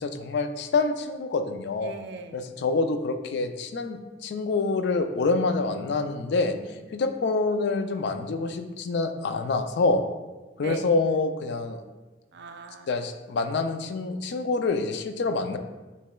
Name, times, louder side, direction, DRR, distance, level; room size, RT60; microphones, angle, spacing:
voice 1, 0.0-1.9 2.3-6.5 6.9-10.0 10.6-11.8 12.9-15.6, left 3 dB, 65° left, 8 dB, 0.4 m, -26 dB
voice 2, 1.8-2.5 6.5-7.0 10.6-10.9 12.3-12.9, right 4 dB, 65° right, 7 dB, 0.4 m, -40 dB
6.6 x 3.2 x 2.2 m, 1.2 s
head